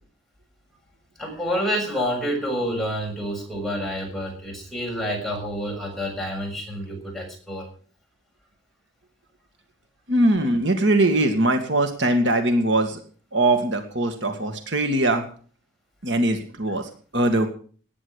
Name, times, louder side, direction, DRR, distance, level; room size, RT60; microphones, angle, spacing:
voice 1, 1.2-7.7 10.4-10.5, equal, ahead, -1 dB, 7.0 m, -28 dB
voice 2, 10.1-13.0 13.3-15.2 16.0-17.5, right 1 dB, 65° right, 6 dB, 2.2 m, -21 dB
18.5 x 10.0 x 6.6 m, 0.43 s
head